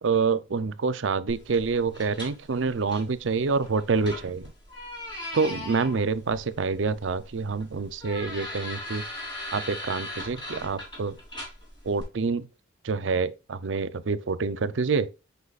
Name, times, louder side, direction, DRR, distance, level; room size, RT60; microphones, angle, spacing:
voice 1, 0.0-4.5 5.3-9.1 9.5-11.2 11.8-12.5 12.8-15.1, right 4 dB, 75° right, 0.6 m, -27 dB
sound 1, 1.3-12.0, left 1 dB, 25° left, 3.5 m, -40 dB
8.3 x 5.6 x 2.4 m
head